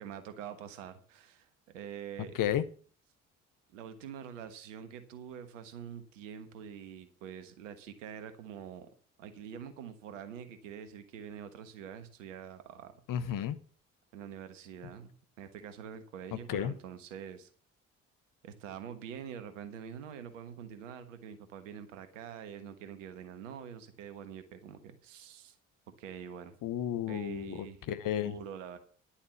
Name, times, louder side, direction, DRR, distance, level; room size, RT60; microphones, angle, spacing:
voice 1, 0.0-2.4 3.7-8.9 9.2-12.9 14.1-17.5 18.4-25.5 26.0-26.5 27.1-27.8 28.2-28.8, right 8 dB, 85° right, 10 dB, 1.4 m, -45 dB
voice 2, 13.1-13.6 16.5-16.7 26.6-27.5 27.9-28.3, left 10 dB, 60° left, 13 dB, 1.2 m, -32 dB
11.0 x 7.2 x 7.1 m, 0.43 s
hypercardioid pair, 45°, 37 cm